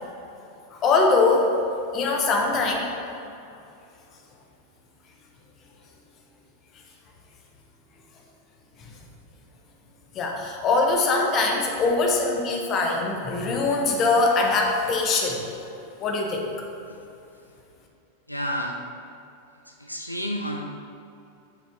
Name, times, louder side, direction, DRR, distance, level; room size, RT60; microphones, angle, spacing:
voice 1, 0.7-1.5 1.9-2.9 8.8-8.9 10.1-15.4 16.0-16.5, left 3 dB, 30° left, 1 dB, 1.1 m, -22 dB
voice 2, 18.3-18.8 19.8-20.6, equal, 90° left, 1 dB, 0.5 m, -30 dB
8.3 x 5.5 x 3.5 m, 2.7 s
figure-of-eight pair, 90°, 0 cm